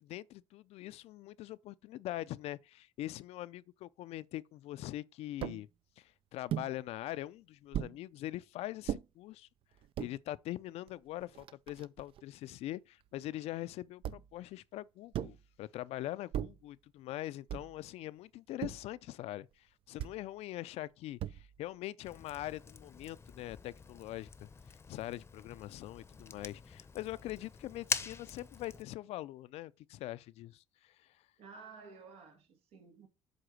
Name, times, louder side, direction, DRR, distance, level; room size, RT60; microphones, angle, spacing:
voice 1, 0.0-5.7 6.0-9.5 10.0-24.5 24.9-31.1, left 15 dB, 70° left, 0.4 m, -43 dB
sound 1, 5.4-5.6 6.5-6.7 7.7-8.0 8.9-9.0 9.8-10.1 10.9-11.0 11.2-12.2 14.0-14.4 15.1-15.5 16.3-16.7 17.5-17.8 18.6-18.9 20.0-20.2 21.2-21.6, right 10 dB, 55° right, 0.4 m, -38 dB
Fire, 22.0-28.8, left 4 dB, 25° left, 0.7 m, -44 dB
voice 2, 31.4-33.1, right 5 dB, 80° right, 1.8 m, -53 dB
7.9 x 3.7 x 6.3 m
cardioid pair, 100°, 11 cm